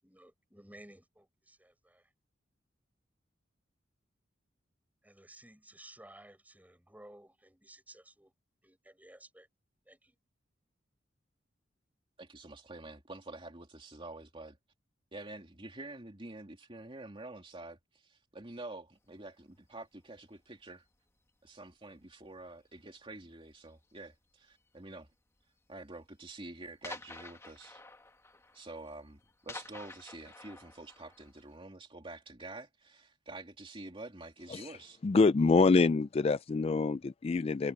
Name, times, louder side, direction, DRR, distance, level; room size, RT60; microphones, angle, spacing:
voice 1, 0.0-2.0 5.0-8.3 8.6-9.5 9.9-10.1, right 1 dB, 10° right, 6.5 m, -56 dB
voice 2, 12.2-14.6 15.1-20.8 21.4-25.1 25.7-27.8 28.5-35.0, right 2 dB, 30° right, 2.8 m, -47 dB
sound 1, 19.2-19.4 20.2-20.6 20.8-21.3 21.7-21.9 22.4-22.5 22.7-22.8 23.6-24.1 24.9-25.0 25.4-25.5 25.8-25.9 26.2-26.3 26.8-31.5, left 3 dB, 15° left, 1.3 m, -50 dB
voice 3, 35.0-37.7, left 4 dB, 30° left, 0.3 m, -26 dB
head